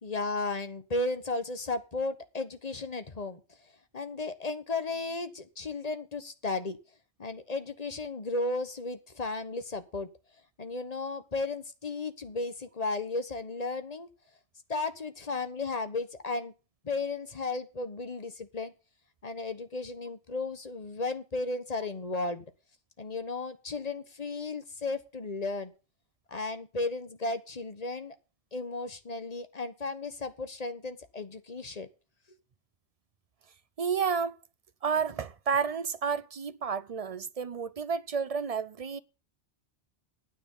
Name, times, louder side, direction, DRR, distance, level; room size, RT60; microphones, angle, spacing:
voice 1, 0.0-3.4 3.9-6.8 7.2-10.1 10.6-14.1 14.7-16.5 16.8-18.7 19.2-22.4 23.0-25.7 26.3-28.2 28.5-31.9, left 3 dB, 40° left, 1.2 m, -34 dB
voice 2, 33.8-34.4 34.8-39.0, right 6 dB, 40° right, 0.6 m, -31 dB
9.7 x 9.0 x 5.5 m
omnidirectional pair, 1.1 m